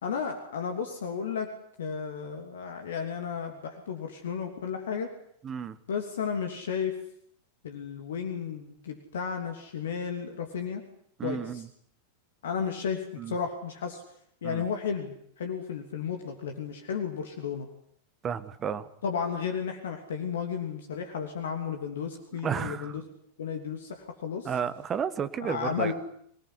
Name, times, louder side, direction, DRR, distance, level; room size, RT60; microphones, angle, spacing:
voice 1, 0.0-1.5 1.8-5.1 5.9-6.9 7.6-10.8 11.2-11.6 12.4-14.0 14.4-17.7 19.0-23.0 23.4-24.5 25.4-25.9, left 6 dB, 60° left, 6 dB, 3.0 m, -33 dB
voice 2, 5.4-5.8 11.2-11.7 13.2-13.4 14.4-14.6 18.2-18.9 22.4-23.0 24.4-25.9, right 7 dB, 25° right, 14 dB, 1.7 m, -32 dB
26.5 x 19.0 x 9.9 m, 0.66 s
figure-of-eight pair, 90°, 0 cm